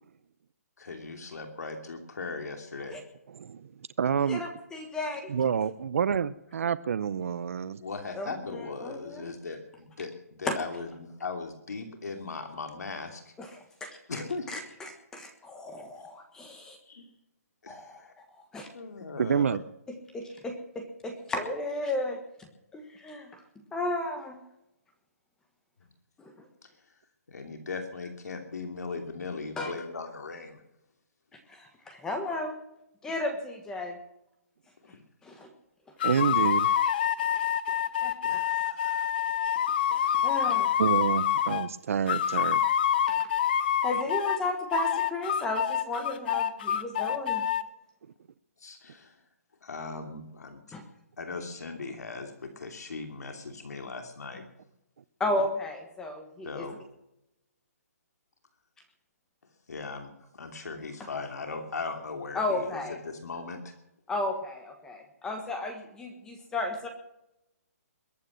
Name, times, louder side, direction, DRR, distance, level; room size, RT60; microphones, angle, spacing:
voice 1, 0.8-3.0 7.8-13.3 14.1-14.5 16.0-16.1 16.8-17.1 17.6-18.1 18.7-19.6 26.6-26.9 27.3-30.6 34.8-35.0 36.6-36.7 38.2-39.2 48.6-49.2 49.6-50.6 51.2-54.4 56.4-56.8 59.7-63.8, left 4 dB, 90° left, 4 dB, 2.8 m, -39 dB
voice 2, 3.4-3.7 4.0-4.4 5.3-7.8 19.2-19.6 36.0-36.8 40.8-42.6, right 7 dB, 60° right, 16 dB, 0.7 m, -28 dB
voice 3, 4.3-5.3 8.1-9.3 10.4-10.5 13.4-14.2 14.5-16.8 17.7-18.0 18.4-18.7 20.1-23.4 23.7-24.4 26.2-26.5 29.6-29.7 31.3-32.6 33.0-34.0 35.2-35.5 35.9-36.0 37.2-37.4 37.7-37.8 38.0-38.4 39.9-40.7 43.1-43.3 43.8-47.4 50.7-50.8 55.2-56.7 62.3-63.0 64.1-66.9, left 2 dB, 5° left, 5 dB, 1.4 m, -34 dB
sound 1, 36.0-41.7 42.1-44.4 44.7-47.6, left 9 dB, 35° left, 0.7 m, -27 dB
22.0 x 9.2 x 6.4 m, 0.84 s
hypercardioid pair, 170°, 9 cm